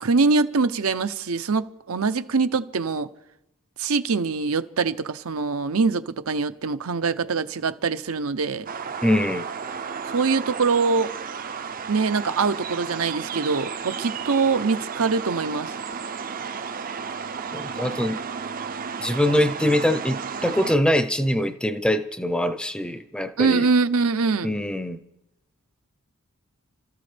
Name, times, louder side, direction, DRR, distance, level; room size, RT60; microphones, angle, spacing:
voice 1, 0.0-3.1 3.8-8.7 10.1-11.1 11.9-15.7 23.4-24.5, right 4 dB, 75° right, 0.8 m, -23 dB
sound 1, 8.7-20.8, right 6 dB, 40° right, 0.6 m, -33 dB
voice 2, 9.0-9.4 17.5-18.2 19.0-23.7 24.4-25.0, left 1 dB, 5° left, 0.7 m, -23 dB
30.0 x 14.0 x 3.4 m
head